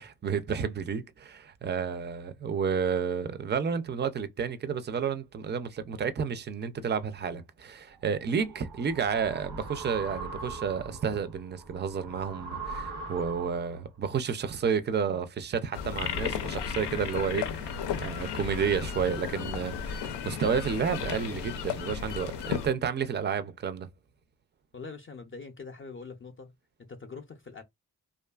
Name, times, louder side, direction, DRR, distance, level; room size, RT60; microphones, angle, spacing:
voice 1, 0.0-23.9, right 6 dB, 25° right, 0.4 m, -31 dB
sound 1, 8.0-13.8, right 3 dB, 85° right, 0.9 m, -41 dB
sound 2, 15.7-22.7, left 7 dB, 85° left, 0.5 m, -34 dB
voice 2, 24.7-26.5 26.8-27.6, left 4 dB, 30° left, 0.5 m, -43 dB
2.6 x 2.4 x 2.3 m
cardioid pair, 60°, 40 cm